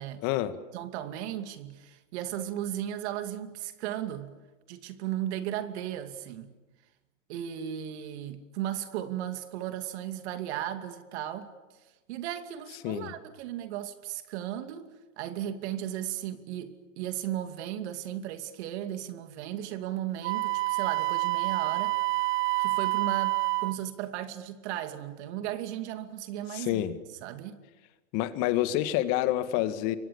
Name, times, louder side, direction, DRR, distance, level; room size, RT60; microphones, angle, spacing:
voice 1, 0.2-0.6 12.8-13.1 26.5-27.0 28.1-30.0, left 14 dB, 50° left, 2.0 m, -28 dB
voice 2, 0.7-4.3 4.7-6.5 7.3-11.5 12.1-14.9 15.2-22.0 22.6-26.8 27.2-27.6, right 11 dB, 60° right, 2.6 m, -35 dB
Wind instrument woodwind instrument, 20.2-23.8, right 23 dB, 35° right, 0.9 m, -28 dB
29.0 x 23.5 x 7.2 m
hypercardioid pair, 115°, 38 cm